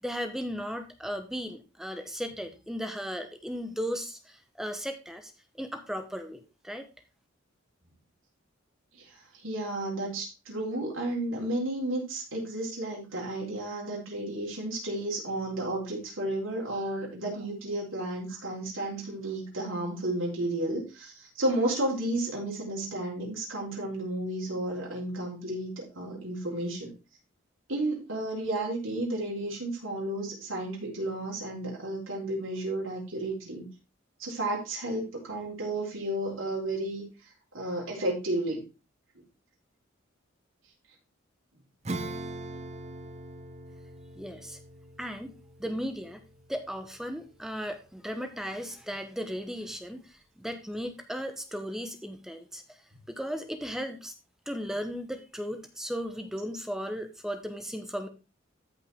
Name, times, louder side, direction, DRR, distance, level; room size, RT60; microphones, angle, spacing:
voice 1, 0.0-6.9 44.2-44.6 45.0-46.2 46.5-52.8 53.1-54.1 54.5-58.1, equal, ahead, 7 dB, 0.9 m, -36 dB
voice 2, 9.4-26.9 27.7-33.7 34.2-37.0 37.5-38.6, right 1 dB, 85° right, -3 dB, 4.2 m, -32 dB
Acoustic guitar / Strum, 41.8-47.9, right 2 dB, 35° right, 0.9 m, -42 dB
13.5 x 5.3 x 3.6 m, 0.29 s
head